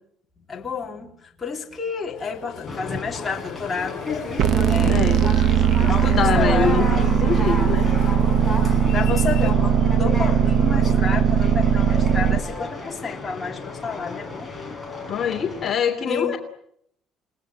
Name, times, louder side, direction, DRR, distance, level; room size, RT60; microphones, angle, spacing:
voice 1, 0.4-4.1 4.7-5.4 5.7-7.0 8.6-14.5 16.1-16.3, left 5 dB, 15° left, -1 dB, 3.5 m, -30 dB
Train, 2.1-9.5, left 11 dB, 55° left, 3.7 m, -40 dB
Conversation, 2.7-15.7, left 3 dB, ahead, 5.8 m, -33 dB
sound 1, 4.4-12.4, right 8 dB, 50° right, 1.1 m, -19 dB
voice 2, 4.9-5.3 5.8-7.9 15.1-16.4, left 7 dB, 30° left, 3 dB, 3.0 m, -25 dB
29.5 x 19.5 x 9.9 m, 0.73 s
cardioid pair, 160°, 0 cm